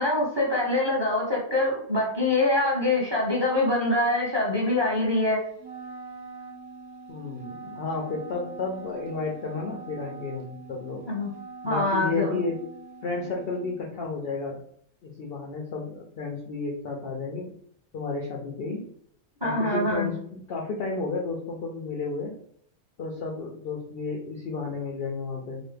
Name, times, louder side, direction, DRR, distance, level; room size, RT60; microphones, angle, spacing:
voice 1, 0.0-5.4 11.1-11.3 11.6-12.4 19.4-20.1, left 2 dB, 25° right, -4 dB, 0.7 m, -24 dB
Wind instrument woodwind instrument, 5.6-13.7, right 4 dB, 75° right, 1.1 m, -43 dB
voice 2, 7.1-11.1 11.6-12.6 13.0-14.6 15.0-17.5 17.9-18.9 19.4-22.4 23.0-25.6, left 3 dB, 70° left, 0 dB, 0.5 m, -32 dB
3.0 x 2.2 x 3.2 m, 0.64 s
omnidirectional pair, 1.5 m